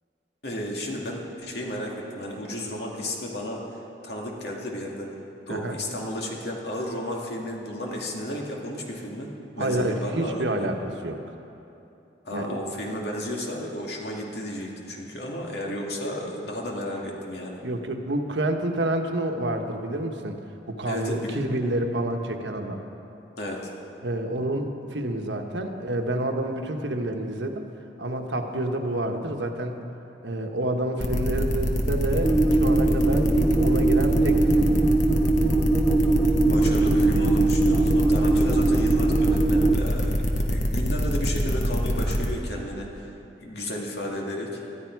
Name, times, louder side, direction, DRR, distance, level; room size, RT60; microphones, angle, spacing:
voice 1, 0.4-5.2 5.5-10.7 12.2-17.6 20.9-21.5 23.4-23.7 36.4-44.6, left 1 dB, 65° left, -1 dB, 2.4 m, -33 dB
voice 2, 9.6-11.2 12.3-12.6 17.6-20.4 20.7-22.8 24.0-27.7 28.0-29.8 30.2-34.9, right 1 dB, 85° right, 4 dB, 1.2 m, -28 dB
sound 1, 31.0-42.3, equal, 45° left, 1.4 m, -25 dB
sound 2, 32.2-39.7, right 2 dB, ahead, 0.7 m, -21 dB
20.0 x 12.5 x 4.7 m, 2.9 s
head